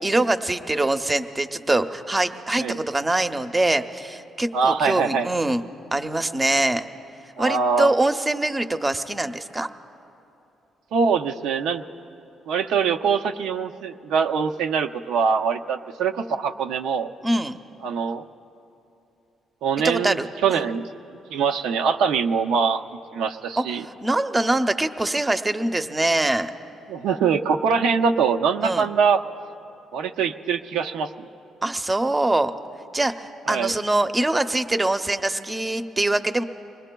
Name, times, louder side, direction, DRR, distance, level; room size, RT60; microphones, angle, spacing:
voice 1, 0.0-5.6 5.9-6.8 7.4-9.7 17.2-17.6 19.8-20.6 23.6-26.5 28.6-28.9 31.6-32.5 32.9-36.4, right 2 dB, 20° right, 9 dB, 0.6 m, -23 dB
voice 2, 4.5-5.3 7.4-7.9 10.9-11.8 12.5-17.1 17.8-18.3 19.6-20.2 20.4-20.8 21.3-22.8 23.1-23.8 26.9-29.2 29.9-31.3 33.5-33.7, right 6 dB, 90° right, 5 dB, 0.5 m, -23 dB
25.5 x 20.0 x 2.3 m, 2.8 s
cardioid pair, 90°, 0 cm